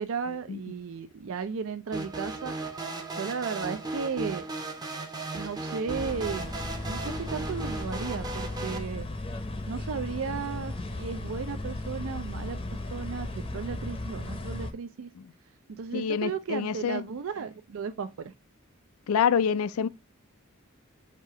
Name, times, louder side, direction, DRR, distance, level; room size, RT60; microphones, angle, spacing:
voice 1, 0.0-2.5 3.2-4.5 5.3-6.5 6.8-9.1 9.7-12.6 12.9-15.1 15.7-18.3, right 6 dB, 70° right, 0.4 m, -35 dB
sound 1, 1.9-8.8, right 2 dB, 20° right, 0.6 m, -36 dB
sound 2, 5.9-14.7, left 2 dB, 25° left, 0.6 m, -36 dB
voice 2, 15.9-17.0 19.1-19.9, left 7 dB, 85° left, 0.4 m, -26 dB
4.8 x 2.8 x 3.5 m
head